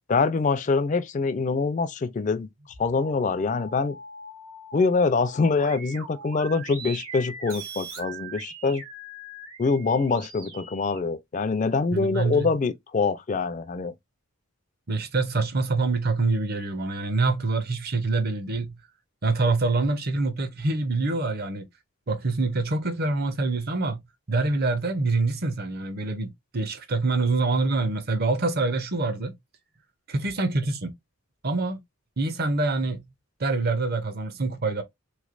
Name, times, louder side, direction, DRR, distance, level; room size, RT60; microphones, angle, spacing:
voice 1, 0.1-2.5 2.8-4.0 4.7-8.8 9.6-13.9, left 4 dB, 35° left, 0.3 m, -24 dB
sound 1, 2.6-11.0, right 2 dB, 70° right, 1.3 m, -41 dB
voice 2, 11.9-12.5 14.9-18.8 19.2-21.6 22.1-24.0 24.3-29.4 30.1-30.9 31.4-31.8 32.2-33.0 33.4-34.8, right 3 dB, 45° right, 0.6 m, -25 dB
3.5 x 3.1 x 2.4 m
head